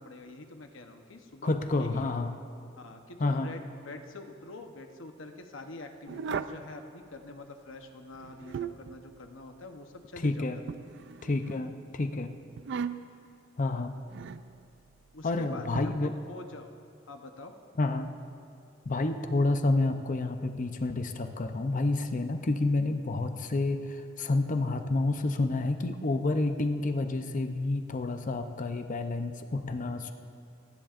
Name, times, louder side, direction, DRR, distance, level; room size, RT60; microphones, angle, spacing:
voice 1, 0.0-2.0 2.8-10.7 15.1-16.7 17.1-17.5, left 2 dB, 75° left, 5 dB, 0.9 m, -45 dB
voice 2, 1.4-2.3 3.2-3.5 10.2-10.6 11.2-12.3 13.6-13.9 15.2-16.1 17.8-18.1 18.9-30.1, left 2 dB, 40° left, 7 dB, 0.6 m, -29 dB
sound 1, 6.1-6.6 8.1-9.0 10.7-11.6 12.6-13.2 14.1-14.5 15.7-15.8, right 6 dB, 65° right, 0.4 m, -36 dB
30.0 x 10.5 x 2.5 m, 2.4 s
head